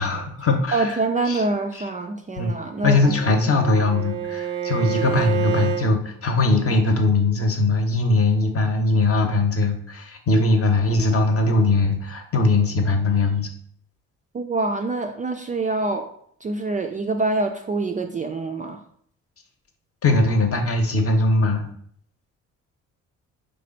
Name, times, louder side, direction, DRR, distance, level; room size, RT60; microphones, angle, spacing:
voice 1, 0.0-1.0 1.3-1.4 2.4-2.6 2.8-13.5 20.0-21.7, left 3 dB, 40° left, 4 dB, 0.8 m, -20 dB
voice 2, 0.7-3.2 14.3-16.1 16.4-18.8, right 3 dB, 25° right, 4 dB, 0.3 m, -25 dB
Bowed string instrument, 2.7-5.9, right 9 dB, 75° right, 0.6 m, -28 dB
3.3 x 2.4 x 4.0 m, 0.63 s
hypercardioid pair, 50°, 36 cm